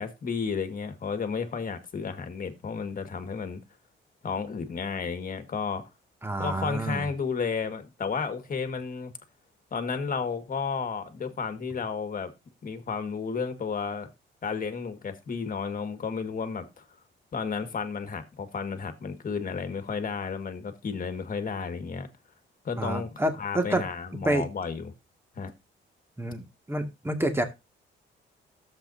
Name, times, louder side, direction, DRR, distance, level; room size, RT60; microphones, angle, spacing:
voice 1, 0.0-3.6 4.2-5.8 6.4-9.1 9.7-12.3 12.6-14.1 14.4-16.8 17.3-22.1 22.6-24.9 25.4-25.5, left 5 dB, 45° left, 1.9 m, -32 dB
voice 2, 6.2-7.1 22.8-23.9 24.2-24.4 26.2-27.4, right 1 dB, 10° right, 2.2 m, -28 dB
12.5 x 7.7 x 2.8 m
cardioid pair, 90°, 20 cm